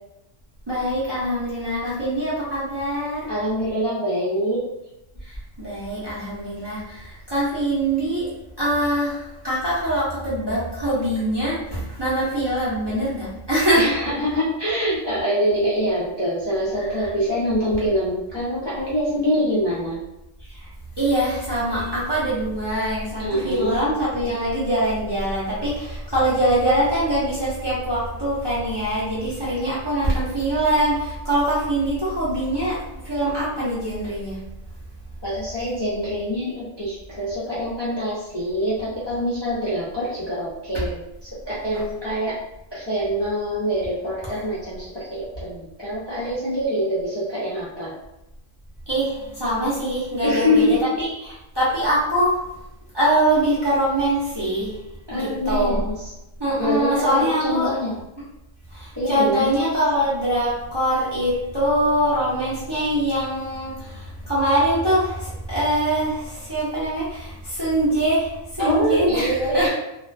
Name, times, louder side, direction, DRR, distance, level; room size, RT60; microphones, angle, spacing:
voice 1, 0.7-3.3 5.2-8.3 8.6-13.9 17.0-17.1 20.4-20.7 21.0-34.4 48.9-51.1 51.5-52.4 52.9-54.8 55.1-55.8 56.4-57.7 58.7-69.7, right 1 dB, 25° right, -10 dB, 0.6 m, -23 dB
voice 2, 3.3-4.7 13.7-20.0 23.2-23.8 35.2-42.4 42.7-47.9 50.2-50.9 55.1-55.9 56.6-58.0 58.9-59.5 68.6-69.7, equal, 30° left, -11 dB, 0.5 m, -24 dB
2.4 x 2.2 x 2.4 m, 0.89 s
omnidirectional pair, 1.3 m